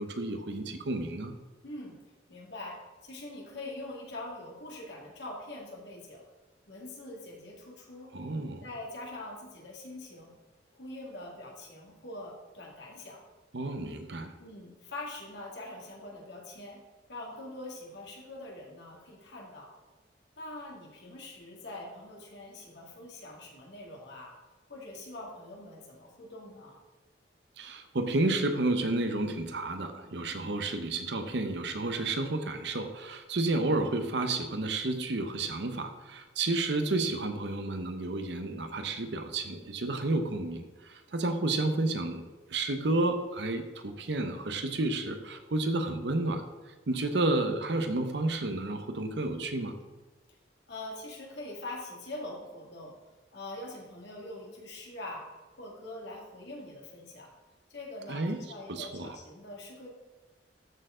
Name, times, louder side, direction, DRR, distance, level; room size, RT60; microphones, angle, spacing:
voice 1, 0.0-1.3 8.1-8.6 13.5-14.3 27.6-49.8 58.1-58.4 58.7-59.2, right 2 dB, 65° right, 7 dB, 0.8 m, -31 dB
voice 2, 1.6-2.0 2.3-6.3 6.7-8.3 8.6-10.4 10.7-13.2 14.4-16.8 17.1-19.7 20.4-24.3 24.7-26.8 50.7-52.9 53.3-55.3 55.6-57.3 57.7-59.9, left 2 dB, 65° left, -2 dB, 2.0 m, -43 dB
12.5 x 4.6 x 3.8 m, 1.2 s
head